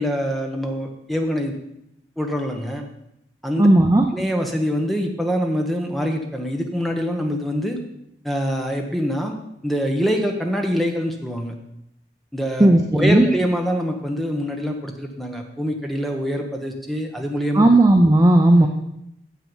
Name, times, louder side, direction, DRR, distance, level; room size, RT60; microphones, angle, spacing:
voice 1, 0.0-1.5 2.2-2.9 3.4-3.7 4.1-7.8 8.2-9.4 9.6-11.5 12.3-17.7 18.6-18.7, equal, ahead, 2 dB, 1.0 m, -25 dB
voice 2, 3.6-4.1 12.6-13.3 17.5-18.7, right 1 dB, 20° right, 2 dB, 0.5 m, -14 dB
9.3 x 7.4 x 5.5 m, 0.81 s
head